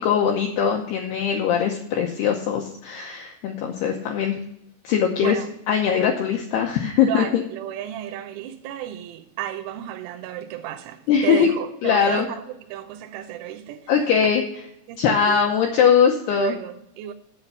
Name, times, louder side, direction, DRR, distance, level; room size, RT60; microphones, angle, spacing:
voice 1, 0.0-4.4 4.8-5.4 5.7-7.4 11.1-11.5 11.8-12.3 13.9-14.4 15.0-16.6, left 7 dB, 75° left, 2.4 m, -21 dB
voice 2, 7.0-13.9 14.9-15.5 16.4-17.1, right 11 dB, 80° right, 3.2 m, -33 dB
8.4 x 8.1 x 5.5 m
omnidirectional pair, 5.8 m